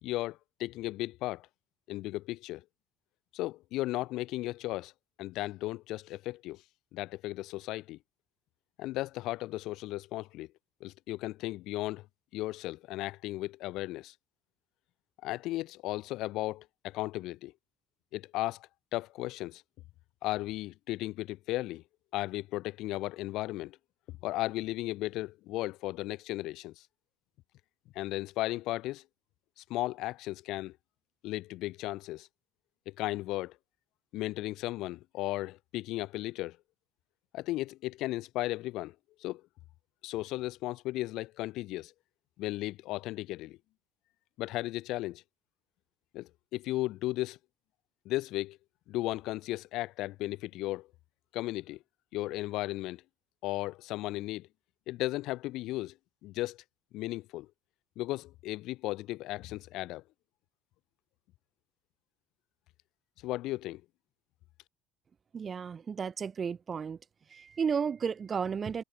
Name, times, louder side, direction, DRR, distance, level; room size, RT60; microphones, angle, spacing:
voice 1, 0.0-1.5 1.9-2.6 3.3-4.9 5.2-6.6 6.9-8.0 8.8-10.5 10.8-12.1 12.3-14.1 15.2-17.5 18.1-19.6 20.2-21.8 22.1-23.8 24.2-26.8 27.9-29.0 29.6-30.8 31.2-32.3 32.8-33.6 34.1-36.6 37.3-38.9 39.2-39.4 40.0-41.9 42.4-43.6 44.4-45.2 46.1-47.4 48.0-48.6 48.9-50.9 51.3-51.8 52.1-53.0 53.4-54.5 54.9-55.9 56.2-56.6 56.9-57.5 58.0-60.0 63.2-63.8, left 17 dB, 70° left, 1.6 m, -35 dB
voice 2, 65.3-67.0 67.3-68.8, right 6 dB, 35° right, 3.6 m, -33 dB
supercardioid pair, 90°, 0 cm